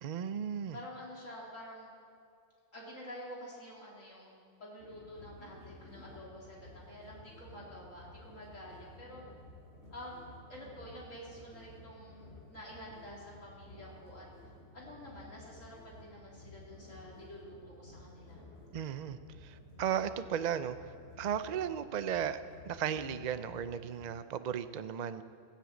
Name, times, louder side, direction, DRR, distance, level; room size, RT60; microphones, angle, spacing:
voice 1, 0.0-0.8 18.7-25.2, right 8 dB, 50° right, 11 dB, 0.5 m, -36 dB
voice 2, 0.7-1.9 2.7-6.6 6.9-9.2 9.9-14.3 14.7-18.4, equal, 75° left, -5 dB, 3.9 m, -49 dB
sound 1, 4.8-24.1, left 1 dB, 55° left, 2.5 m, -54 dB
15.5 x 10.0 x 8.2 m, 2.4 s
omnidirectional pair, 1.3 m